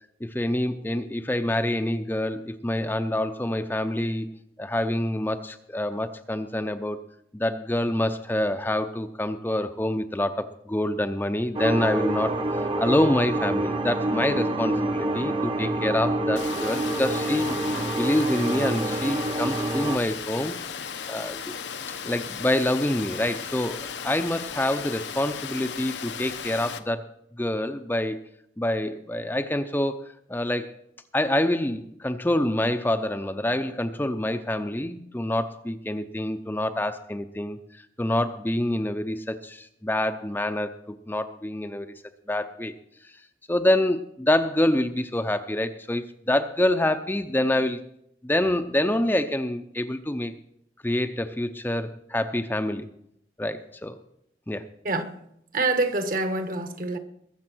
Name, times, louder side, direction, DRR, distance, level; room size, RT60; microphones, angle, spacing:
voice 1, 0.2-4.3 4.6-7.0 7.3-21.5 22.0-27.1 27.4-28.2 28.6-30.8 31.1-40.8 41.1-41.9 42.3-42.7 43.0-43.1 43.5-47.8 48.2-50.3 50.8-52.9 53.4-54.0 54.5-54.7, left 1 dB, 10° left, 0.5 m, -26 dB
sound 1, 11.5-20.0, right 2 dB, 30° right, 0.9 m, -27 dB
Water, 16.4-26.8, left 7 dB, 85° left, 0.9 m, -36 dB
voice 2, 54.8-55.2 55.5-57.0, right 2 dB, 50° right, 1.3 m, -26 dB
21.5 x 7.3 x 6.1 m
head